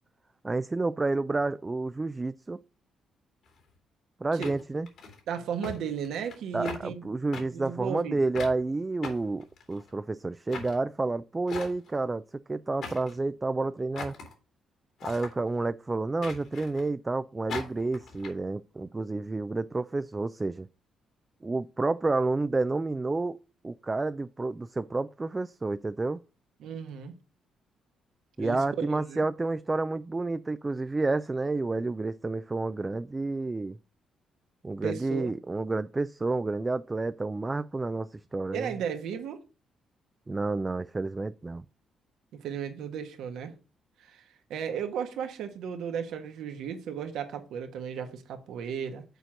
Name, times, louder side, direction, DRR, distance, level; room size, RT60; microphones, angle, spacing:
voice 1, 0.4-2.6 4.2-4.9 6.5-12.2 12.5-14.1 15.0-20.7 21.4-23.4 23.6-26.2 28.4-33.8 34.6-38.7 40.3-41.6, right 3 dB, 20° right, 0.3 m, -30 dB
sound 1, 3.5-3.6 4.4-5.2 5.6-5.8 6.0-6.4 6.6-6.8 7.3-7.4 8.3-8.6 9.0-9.9 10.5-10.8 11.5-12.0 12.8-13.2 13.9-14.3 15.0-15.3 16.2-16.9 17.5-18.3, left 4 dB, 70° left, 2.7 m, -40 dB
voice 2, 5.3-7.0 7.4-8.2 26.6-27.1 28.4-29.2 34.8-35.3 38.5-39.4 42.3-43.5 44.0-49.0, right 7 dB, 80° right, 1.3 m, -35 dB
6.8 x 4.4 x 6.4 m
cardioid pair, 90°, 0 cm